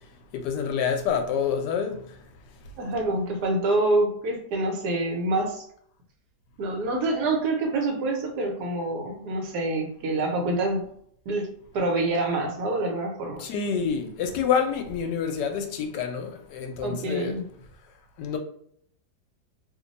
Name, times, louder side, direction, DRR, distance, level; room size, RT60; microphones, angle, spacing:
voice 1, 0.3-2.0 13.4-17.3 18.2-18.4, left 7 dB, 80° left, 1.2 m, -27 dB
voice 2, 2.8-5.6 6.6-10.8 11.3-11.5 11.7-13.4 16.8-17.5, right 2 dB, 70° right, 1.3 m, -26 dB
3.1 x 2.2 x 3.9 m
omnidirectional pair, 1.8 m